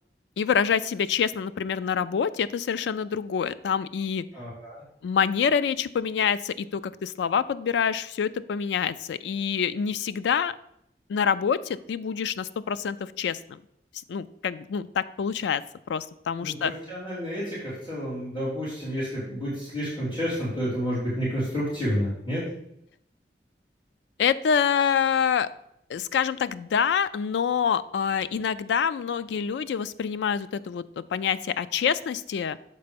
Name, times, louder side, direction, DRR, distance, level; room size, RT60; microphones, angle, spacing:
voice 1, 0.4-4.2 5.0-10.6 11.1-13.6 14.1-15.6 15.9-16.7 24.2-25.5 25.9-32.6, left 7 dB, 85° left, 15 dB, 0.3 m, -26 dB
voice 2, 4.3-4.8 16.4-22.4, equal, 30° left, -11 dB, 2.8 m, -30 dB
6.8 x 4.1 x 5.2 m, 0.76 s
head